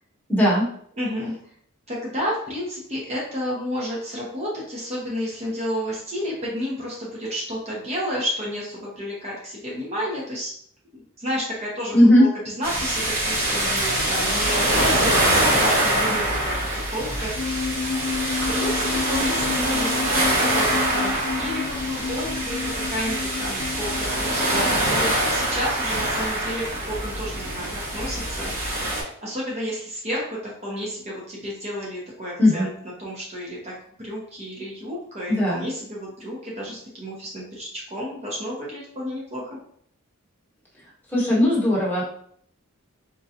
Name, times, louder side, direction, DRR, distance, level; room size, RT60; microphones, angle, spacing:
voice 1, 0.3-0.7 11.9-12.2 32.4-32.7 35.3-35.6 41.1-42.0, left 1 dB, 10° left, -7 dB, 1.1 m, -17 dB
voice 2, 1.0-1.4 1.9-10.6 10.9-17.9 18.5-28.5 29.2-32.7 33.0-39.5, equal, 30° right, -5 dB, 0.7 m, -31 dB
sound 1, 12.6-29.0, right 1 dB, 65° right, 1.5 m, -24 dB
sound 2, 17.4-24.8, left 5 dB, 80° left, 0.4 m, -30 dB
3.8 x 2.2 x 2.7 m, 0.63 s
head